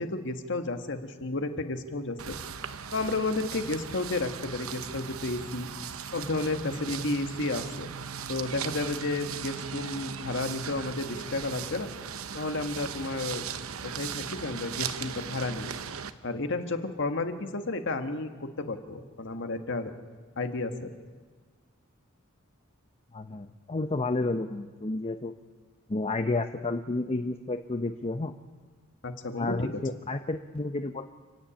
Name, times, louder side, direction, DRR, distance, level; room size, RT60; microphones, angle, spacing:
voice 1, 0.0-2.3 2.9-5.7 6.1-7.9 8.3-11.9 12.3-13.4 13.8-15.7 16.2-19.9 20.4-20.9 29.0-29.7, left 2 dB, 60° left, 7 dB, 1.6 m, -32 dB
sound 1, 2.2-16.1, right 7 dB, 80° right, 0.9 m, -38 dB
voice 2, 23.1-25.3 25.9-28.3 29.4-31.1, left 2 dB, 30° left, 8 dB, 0.7 m, -31 dB
29.5 x 10.0 x 8.9 m, 1.4 s
head